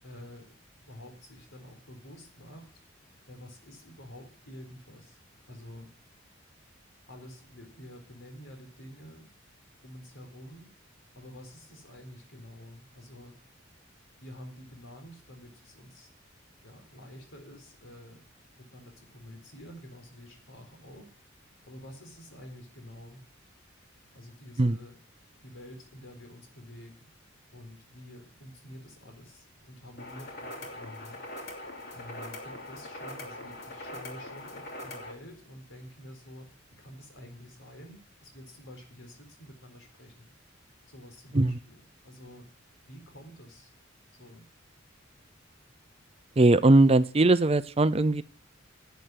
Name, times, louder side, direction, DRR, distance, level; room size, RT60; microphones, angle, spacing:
voice 1, 0.0-2.7 3.3-5.2 5.5-5.9 7.1-9.3 9.8-10.7 11.1-13.4 14.2-16.1 16.6-18.2 18.6-21.1 21.7-23.2 24.1-25.0 25.4-27.1 27.5-31.2 31.9-40.3 40.9-41.8 42.0-42.5 42.8-43.7 44.2-44.5, left 1 dB, 80° left, 4 dB, 4.2 m, -48 dB
sound 1, 30.0-35.1, left 1 dB, 55° left, 2.9 m, -42 dB
voice 2, 46.4-48.2, right 2 dB, 30° right, 14 dB, 0.5 m, -20 dB
11.0 x 8.2 x 7.5 m, 0.43 s
head